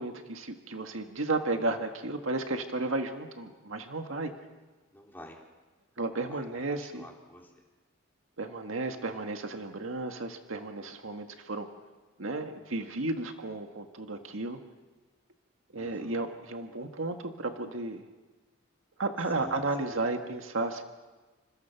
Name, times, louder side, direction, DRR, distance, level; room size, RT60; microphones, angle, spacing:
voice 1, 0.0-4.3 6.0-7.1 8.4-11.7 12.2-14.6 15.7-18.0 19.0-20.8, right 2 dB, 80° right, 5 dB, 1.8 m, -33 dB
voice 2, 4.9-5.4 6.1-7.6 11.3-11.7 15.7-16.2 19.4-20.0, equal, 10° left, 0 dB, 3.6 m, -50 dB
28.5 x 26.5 x 5.9 m, 1.3 s
head